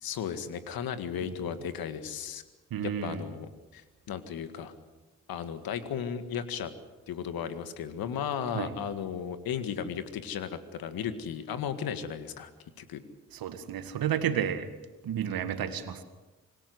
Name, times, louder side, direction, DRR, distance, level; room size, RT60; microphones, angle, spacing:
voice 1, 0.0-2.4 2.8-4.7 5.3-6.7 7.1-12.5 12.8-13.0, left 8 dB, 70° left, 10 dB, 1.9 m, -35 dB
voice 2, 1.2-1.5 2.7-3.3 8.5-8.7 13.3-14.7 15.0-16.0, right 9 dB, 70° right, 9 dB, 2.0 m, -32 dB
26.0 x 16.0 x 8.1 m, 1.2 s
hypercardioid pair, 45°, 37 cm